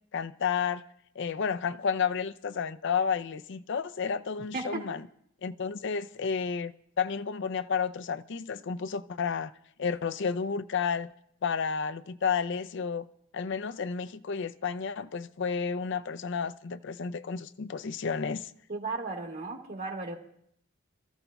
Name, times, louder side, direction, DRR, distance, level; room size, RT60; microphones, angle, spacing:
voice 1, 0.1-0.8 1.2-5.1 5.4-9.5 9.8-11.1 11.4-13.1 13.3-18.5, left 6 dB, 65° left, 0.5 m, -31 dB
voice 2, 4.5-4.9 18.7-20.2, right 3 dB, 50° right, 2.2 m, -35 dB
27.0 x 14.5 x 2.3 m
head